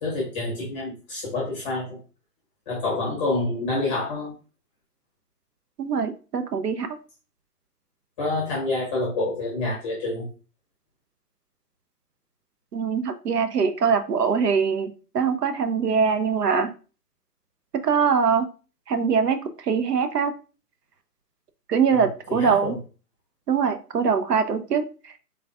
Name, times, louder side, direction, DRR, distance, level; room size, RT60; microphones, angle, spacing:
voice 1, 0.0-2.0 2.7-4.3 8.2-10.3 21.9-22.8, left 2 dB, 10° left, -4 dB, 0.6 m, -28 dB
voice 2, 5.8-6.9 12.7-16.7 17.8-18.5 18.9-20.3 21.7-22.8 23.5-25.1, right 6 dB, 80° right, 9 dB, 0.8 m, -23 dB
4.0 x 3.6 x 2.3 m, 0.35 s
hypercardioid pair, 145°, 47 cm